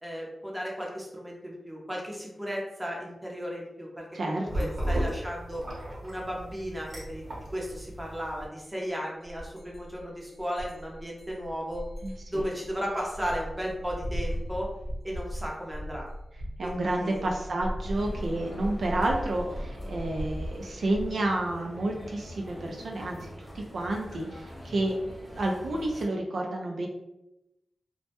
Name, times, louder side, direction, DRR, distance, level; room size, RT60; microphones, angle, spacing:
voice 1, 0.0-5.6 6.0-7.3 7.5-11.8 12.3-14.7 15.0-16.1 16.6-17.2, equal, 10° right, -2 dB, 0.7 m, -35 dB
voice 2, 4.1-4.7 12.0-12.5 16.6-23.2 23.5-25.0 25.3-26.9, right 1 dB, 80° right, 0 dB, 0.3 m, -30 dB
sound 1, 4.5-8.5, right 1 dB, 60° right, 0.9 m, -34 dB
sound 2, 8.7-8.9 9.2-21.1, equal, 70° left, 0.6 m, -38 dB
sound 3, 17.8-26.0, equal, 25° left, 0.9 m, -44 dB
2.1 x 2.1 x 2.8 m, 0.90 s
wide cardioid pair, 80°, 0 cm